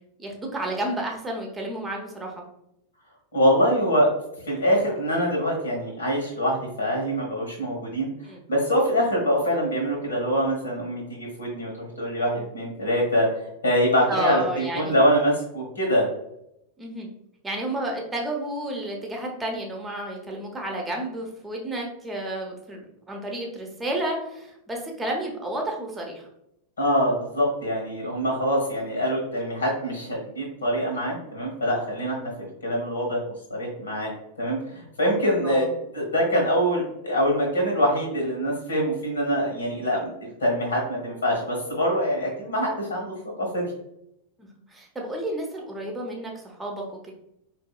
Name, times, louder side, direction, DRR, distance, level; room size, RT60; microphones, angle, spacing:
voice 1, 0.2-2.4 8.2-8.4 14.1-15.0 16.8-17.1 17.4-26.3 35.4-35.7 44.7-47.1, right 1 dB, 10° right, 0 dB, 0.9 m, -31 dB
voice 2, 3.3-4.1 4.5-8.1 8.5-16.0 26.8-33.2 33.5-34.1 34.4-35.7 35.9-43.7, equal, 70° left, 0 dB, 1.4 m, -24 dB
4.5 x 2.7 x 2.3 m, 0.80 s
figure-of-eight pair, 90°, 0 cm